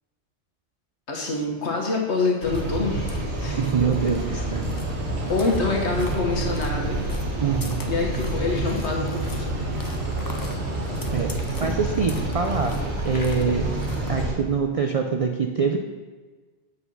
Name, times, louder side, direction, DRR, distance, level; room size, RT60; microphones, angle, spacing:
voice 1, 1.1-3.6 5.3-7.0 7.9-9.7 11.6-11.7, left 3 dB, 75° left, -1 dB, 1.6 m, -26 dB
sound 1, 2.4-14.3, left 2 dB, 30° left, 0.4 m, -42 dB
sound 2, 2.4-14.3, right 2 dB, 75° right, 1.6 m, -28 dB
voice 2, 3.6-4.7 7.4-7.8 11.1-11.3 11.6-12.8 13.0-13.7 14.1-15.8, right 5 dB, 60° right, 4 dB, 0.3 m, -24 dB
8.1 x 4.1 x 5.5 m, 1.4 s
omnidirectional pair, 1.2 m